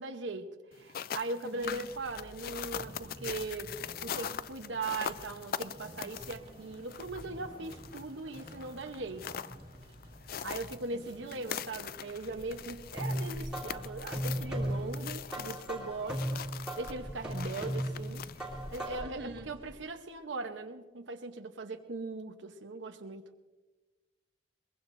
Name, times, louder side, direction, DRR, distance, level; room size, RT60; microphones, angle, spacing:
voice 1, 0.0-3.7 4.0-9.3 10.4-16.4 16.8-18.2 18.7-23.3, right 3 dB, 90° right, 4 dB, 0.9 m, -39 dB
sound 1, 0.7-19.0, left 8 dB, 50° left, 0.4 m, -43 dB
voice 2, 1.4-1.9 10.9-11.3 19.0-19.5, right 1 dB, 60° right, 6 dB, 1.1 m, -46 dB
sound 2, 1.6-19.8, equal, 30° right, 2.1 m, -53 dB
sound 3, 12.4-19.2, equal, 5° right, 2.7 m, -37 dB
22.5 x 21.0 x 2.6 m, 1.2 s
head